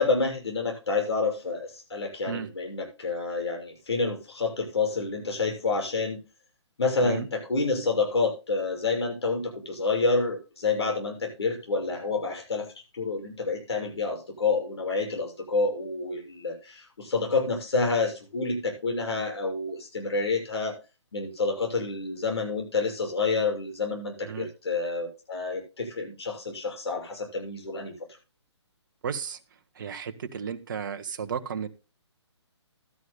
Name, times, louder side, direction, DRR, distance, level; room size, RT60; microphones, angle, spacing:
voice 1, 0.0-6.2 6.8-12.7 12.9-20.8 21.1-27.9, left 3 dB, 60° left, 1 dB, 6.7 m, -28 dB
voice 2, 29.0-29.4 29.8-31.7, right 7 dB, 45° right, 8 dB, 1.2 m, -33 dB
16.0 x 12.5 x 2.2 m, 0.29 s
figure-of-eight pair, 135°, 15 cm